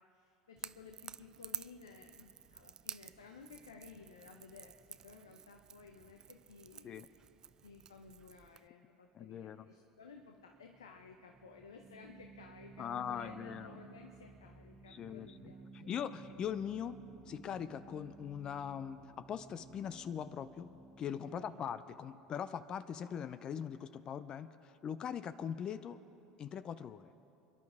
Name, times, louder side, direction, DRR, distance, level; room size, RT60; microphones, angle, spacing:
voice 1, 0.0-7.2 7.6-15.9 21.3-21.6, left 5 dB, 90° left, 4 dB, 0.7 m, -56 dB
Crackle / Crack, 0.6-8.7, right 7 dB, 35° right, 0.4 m, -50 dB
voice 2, 9.1-9.7 12.8-13.7 14.9-26.0 26.4-27.1, left 8 dB, 40° left, 14 dB, 0.5 m, -41 dB
sound 1, 10.1-23.3, right 5 dB, 5° right, 1.2 m, -57 dB
28.0 x 11.0 x 3.6 m, 2.8 s
hypercardioid pair, 75°, 2 cm